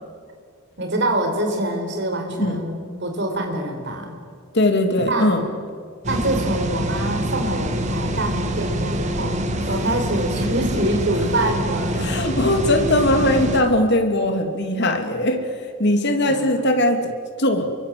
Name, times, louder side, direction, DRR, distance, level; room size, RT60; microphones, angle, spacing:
voice 1, 0.8-4.2 5.0-5.5 6.1-12.1 16.3-16.5, right 1 dB, 55° right, 4 dB, 4.6 m, -25 dB
voice 2, 4.5-5.4 10.7-10.9 12.0-15.4 15.8-17.1 17.4-17.7, left 1 dB, 50° left, 6 dB, 2.6 m, -20 dB
sound 1, 6.0-13.6, right 1 dB, 35° right, 2.0 m, -25 dB
29.0 x 23.5 x 7.7 m, 2.1 s
head